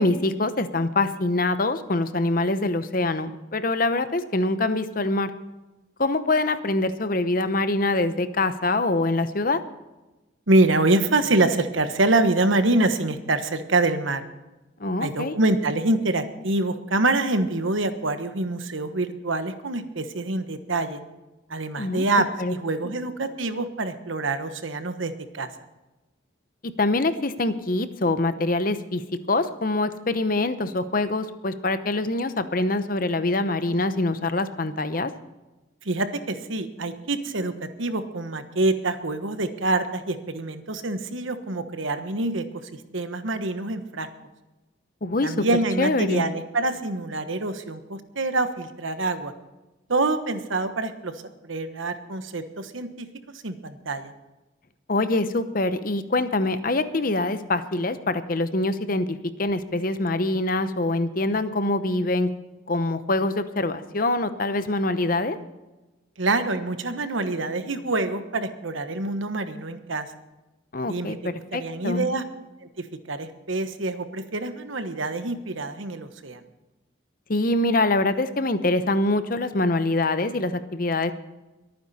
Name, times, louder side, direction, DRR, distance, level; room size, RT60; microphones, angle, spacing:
voice 1, 0.0-5.3 6.0-9.6 14.8-15.4 21.7-22.0 22.4-22.5 26.6-29.0 29.3-35.1 45.0-45.4 45.8-46.3 54.9-62.3 62.7-65.4 70.7-72.1 77.3-81.1, left 2 dB, 45° left, 11 dB, 0.8 m, -24 dB
voice 2, 10.5-14.2 15.0-21.0 21.5-22.2 22.5-25.5 35.8-42.4 42.9-44.1 45.2-49.3 49.9-51.1 51.4-53.1 53.4-54.1 66.2-70.0 70.9-71.2 71.5-72.2 72.8-76.4, right 2 dB, 80° right, 9 dB, 1.2 m, -25 dB
23.0 x 9.5 x 4.2 m, 1.1 s
head